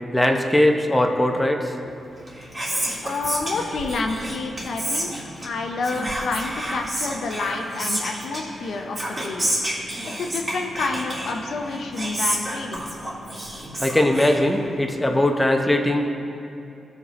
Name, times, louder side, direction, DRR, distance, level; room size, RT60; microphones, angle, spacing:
voice 1, 0.1-1.7 13.8-16.1, left 1 dB, 10° left, 2 dB, 0.8 m, -20 dB
Whispering, 2.1-15.0, right 1 dB, 35° right, 2.2 m, -30 dB
voice 2, 3.0-9.5 10.2-13.0, left 3 dB, 75° left, 2 dB, 0.7 m, -29 dB
15.0 x 5.4 x 3.1 m, 2.7 s
cardioid pair, 70°, 0 cm